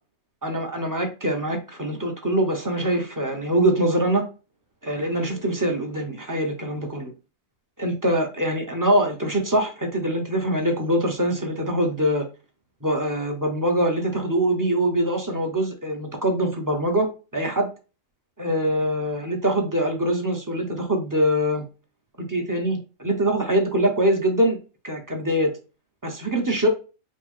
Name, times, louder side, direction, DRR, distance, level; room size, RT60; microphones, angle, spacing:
voice 1, 0.4-4.2 4.8-7.1 7.8-12.3 12.8-17.7 18.4-21.7 22.2-24.6 24.8-25.5 26.0-26.7, right 1 dB, 15° right, 2 dB, 0.9 m, -23 dB
5.3 x 2.4 x 3.5 m, 0.32 s
omnidirectional pair, 1.4 m